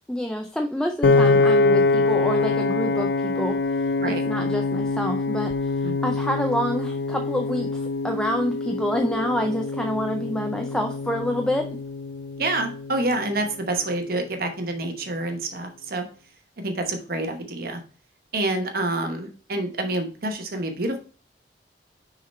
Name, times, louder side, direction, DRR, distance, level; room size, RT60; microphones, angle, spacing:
voice 1, 0.1-3.6 4.0-11.8, equal, 5° left, 4 dB, 0.4 m, -27 dB
Piano, 1.0-13.3, left 3 dB, 70° left, 0.4 m, -24 dB
voice 2, 12.4-16.1 16.6-17.8 18.3-21.0, right 2 dB, 55° right, 5 dB, 0.9 m, -27 dB
6.3 x 3.8 x 4.2 m, 0.38 s
head